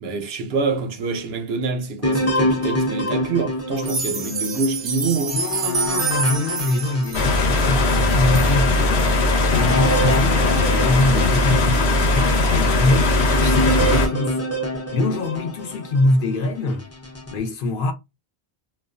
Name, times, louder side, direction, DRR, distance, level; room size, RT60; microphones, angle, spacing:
voice 1, 0.0-5.4, right 4 dB, 75° right, 0.8 m, -25 dB
sound 1, 2.0-7.8 8.3-8.4 9.0-16.2 16.8-17.4, equal, 20° left, 0.5 m, -26 dB
sound 2, 3.8-8.5 9.0-9.1 9.5-9.6 10.1-10.2, right 5 dB, 45° right, 0.6 m, -28 dB
voice 2, 5.3-9.1 9.4-14.4 14.9-16.9 17.3-17.9, left 2 dB, 60° left, 0.8 m, -24 dB
sound 3, 7.1-14.1, left 2 dB, 85° left, 1.0 m, -19 dB
2.4 x 2.2 x 2.4 m
omnidirectional pair, 1.1 m